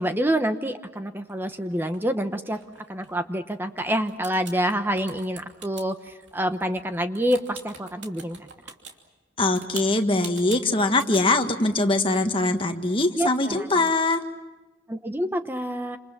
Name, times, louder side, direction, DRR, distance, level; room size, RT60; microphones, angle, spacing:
voice 1, 0.0-2.6 2.9-8.5 13.2-13.9 14.9-16.0, equal, 10° right, 8 dB, 0.9 m, -27 dB
sound 1, 1.3-3.8 4.1-8.9 9.4-11.3, right 6 dB, 85° right, 2.8 m, -43 dB
voice 2, 9.4-14.2, left 2 dB, 30° left, 5 dB, 1.7 m, -22 dB
28.5 x 27.5 x 6.0 m, 1.2 s
head